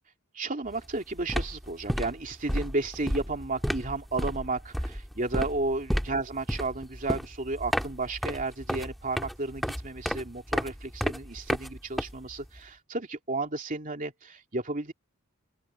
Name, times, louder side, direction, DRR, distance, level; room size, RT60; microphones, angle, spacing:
voice 1, 0.3-14.9, right 2 dB, 40° right, 2.8 m, -33 dB
sound 1, 0.7-0.9 1.2-12.6, equal, ahead, 1.6 m, -32 dB
open air
head